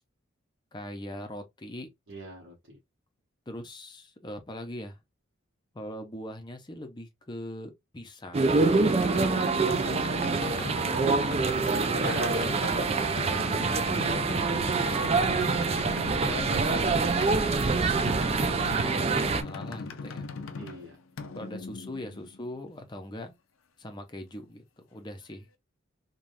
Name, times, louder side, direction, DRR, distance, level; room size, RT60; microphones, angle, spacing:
voice 1, 0.7-1.9 3.5-5.0 5.7-8.8 10.3-11.4 12.3-13.6 13.9-14.2 15.0-15.4 16.3-18.1 18.4-20.3 21.3-23.3 23.8-25.5, left 1 dB, 20° left, 0.6 m, -41 dB
voice 2, 2.1-2.8 9.1-10.2 12.0-13.3 20.6-21.0, right 1 dB, 70° right, 1.0 m, -39 dB
sound 1, 8.3-19.4, right 4 dB, 30° right, 0.3 m, -26 dB
sound 2, 9.0-22.6, left 3 dB, 85° left, 0.5 m, -39 dB
3.3 x 2.3 x 2.6 m
head